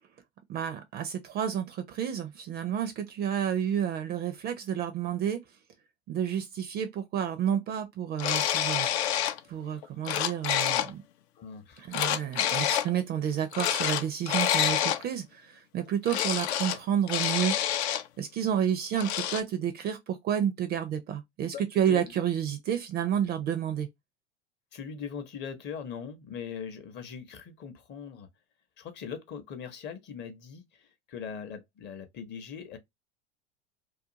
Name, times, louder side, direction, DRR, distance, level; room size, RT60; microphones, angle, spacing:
voice 1, 0.5-5.4 6.1-8.9 9.5-11.0 11.8-17.5 18.2-23.9, right 9 dB, 30° right, 0.4 m, -30 dB
sound 1, 8.2-9.4 9.8-10.9 11.9-12.9 13.5-15.0 16.1-16.8 17.1-18.0 18.9-19.4, left 11 dB, 70° left, 0.5 m, -27 dB
voice 2, 11.4-12.0 21.5-22.1 24.7-28.3 28.8-32.8, left 7 dB, 30° left, 0.7 m, -41 dB
2.4 x 2.2 x 2.7 m
hypercardioid pair, 90°, 34 cm